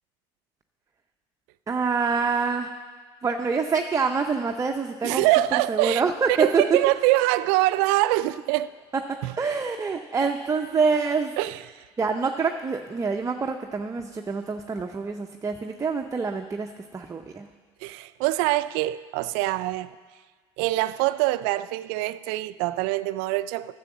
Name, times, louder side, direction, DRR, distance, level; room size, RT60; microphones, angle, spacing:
voice 1, 1.7-2.7 3.2-5.2 5.7-6.8 9.4-11.3 12.0-17.5, right 5 dB, 20° right, 0.6 m, -26 dB
voice 2, 5.0-6.0 6.3-8.7 9.2-9.3 11.4-11.8 17.8-20.0 20.6-23.7, right 17 dB, 75° right, 0.4 m, -24 dB
10.0 x 6.9 x 7.3 m
hypercardioid pair, 80°, 14 cm